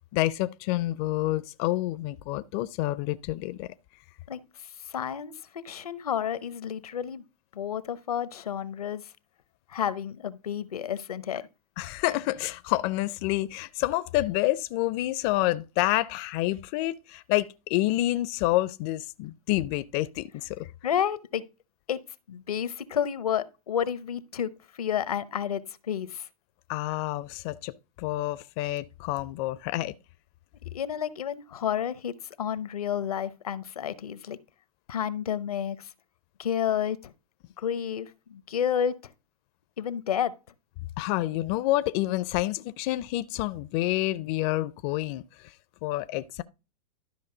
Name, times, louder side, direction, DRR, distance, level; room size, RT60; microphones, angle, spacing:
voice 1, 0.1-3.7 11.8-20.7 26.7-29.9 41.0-45.5 45.8-46.4, left 16 dB, 45° left, 0.5 m, -28 dB
voice 2, 4.3-7.2 7.5-9.1 9.7-11.4 20.8-21.4 21.9-22.0 22.3-24.5 24.8-26.3 30.7-34.4 34.9-35.9 36.4-37.1 37.6-39.1 39.8-40.3, left 9 dB, 80° left, 0.9 m, -30 dB
12.5 x 5.3 x 3.8 m
hypercardioid pair, 110°, 19 cm